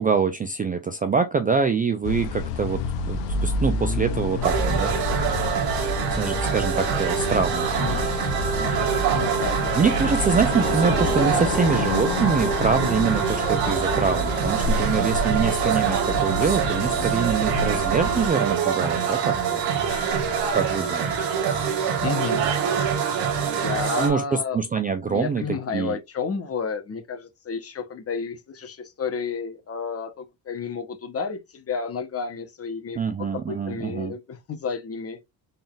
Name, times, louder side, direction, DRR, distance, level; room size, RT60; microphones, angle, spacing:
voice 1, 0.0-4.9 6.2-7.7 9.7-19.6 20.5-21.1 24.0-24.2 24.5-25.4 25.7-26.0 33.0-34.1, right 5 dB, 20° right, 0.4 m, -25 dB
sound 1, 2.0-18.3, left 3 dB, 85° left, 0.9 m, -28 dB
sound 2, 4.4-24.1, right 7 dB, 80° right, 1.6 m, -25 dB
voice 2, 7.8-9.6 19.9-20.2 20.7-20.8 22.0-22.4 23.4-24.6 25.0-35.2, left 5 dB, 35° left, 1.0 m, -32 dB
4.0 x 3.6 x 2.4 m
cardioid pair, 95°, 44 cm